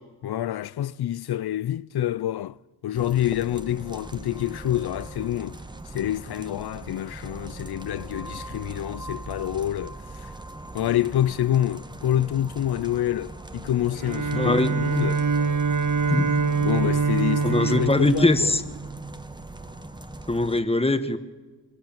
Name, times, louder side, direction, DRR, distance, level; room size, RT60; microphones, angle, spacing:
voice 1, 0.2-2.6 2.8-5.6 5.9-10.3 10.7-15.3 16.6-18.6, left 12 dB, 65° left, 0.5 m, -27 dB
sound 1, 2.9-20.6, right 2 dB, 10° right, 1.0 m, -40 dB
Bowed string instrument, 13.9-19.2, right 5 dB, 45° right, 1.0 m, -25 dB
voice 2, 14.4-14.7 16.1-16.3 17.4-18.6 20.3-21.2, left 2 dB, 15° left, 1.3 m, -22 dB
23.0 x 13.5 x 8.8 m
cardioid pair, 75°, 42 cm